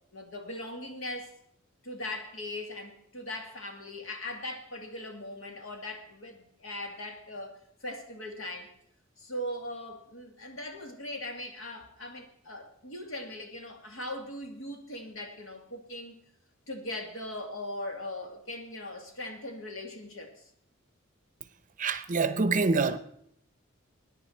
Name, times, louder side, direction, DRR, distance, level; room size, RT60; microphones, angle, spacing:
voice 1, 0.1-1.4 1.8-8.7 9.2-16.2 16.7-20.5, left 1 dB, 75° left, 2.4 m, -40 dB
voice 2, 21.8-23.0, right 4 dB, 40° right, 0.8 m, -26 dB
20.5 x 9.9 x 4.4 m
head